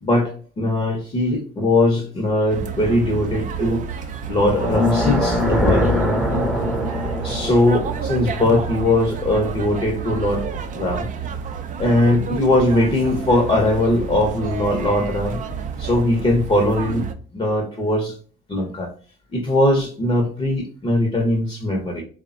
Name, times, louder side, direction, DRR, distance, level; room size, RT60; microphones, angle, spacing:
voice 1, 0.0-3.8 4.3-5.9 7.2-10.5 10.7-11.1 11.8-15.4 15.8-17.0 17.3-18.1 18.5-18.9 19.3-22.0, left 1 dB, 30° left, 2 dB, 0.7 m, -20 dB
sound 1, 2.5-17.1, right 6 dB, 45° right, 0.4 m, -30 dB
sound 2, 4.4-9.6, left 1 dB, 5° right, 0.7 m, -23 dB
3.2 x 2.1 x 2.5 m, 0.40 s
supercardioid pair, 80°, 19 cm